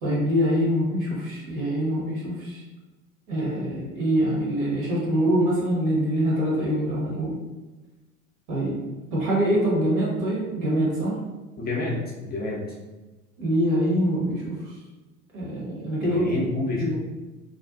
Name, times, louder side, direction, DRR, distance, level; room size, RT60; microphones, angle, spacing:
voice 1, 0.0-2.6 3.3-7.4 8.5-8.8 9.1-11.2 13.4-14.6 15.3-16.3 16.8-17.0, equal, 45° right, -4 dB, 1.0 m, -24 dB
voice 2, 11.6-12.6 16.0-17.0, left 2 dB, 20° left, -4 dB, 0.6 m, -29 dB
2.5 x 2.2 x 2.4 m, 1.2 s
figure-of-eight pair, 75°, 45 cm